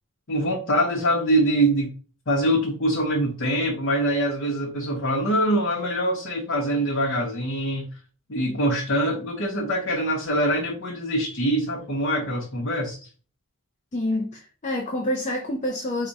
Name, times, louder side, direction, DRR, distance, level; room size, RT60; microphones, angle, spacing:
voice 1, 0.3-1.9 2.3-7.9 8.3-13.1, right 1 dB, 60° left, 1.0 m, -24 dB
voice 2, 13.9-16.1, left 1 dB, 35° left, 0.6 m, -27 dB
4.7 x 2.4 x 4.0 m
head